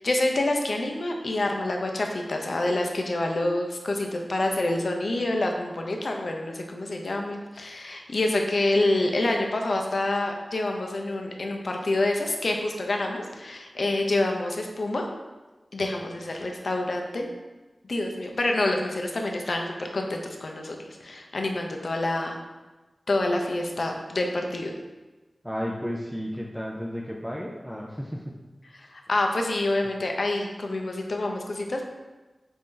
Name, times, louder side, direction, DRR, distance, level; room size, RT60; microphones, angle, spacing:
voice 1, 0.0-15.0 15.7-17.3 17.8-22.4 23.1-24.7 28.7-31.9, left 2 dB, 65° left, 2 dB, 0.5 m, -27 dB
voice 2, 25.4-28.3, equal, 5° right, -3 dB, 0.4 m, -33 dB
4.3 x 2.6 x 3.7 m, 1.2 s
wide cardioid pair, 70°, 0 cm